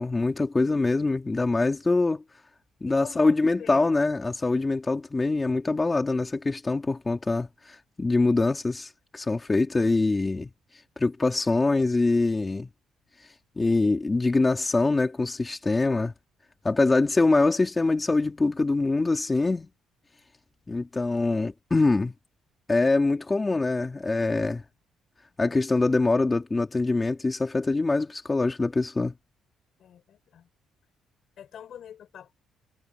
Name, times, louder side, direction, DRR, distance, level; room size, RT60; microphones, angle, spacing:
voice 1, 0.0-2.2 2.8-10.5 11.0-12.7 13.6-16.1 16.6-19.7 20.7-22.1 22.7-24.6 25.4-29.1, left 3 dB, 15° left, 3.4 m, -24 dB
voice 2, 2.9-3.8 29.8-30.5 31.4-32.3, left 9 dB, 55° left, 5.6 m, -44 dB
cardioid pair, 140°, 0 cm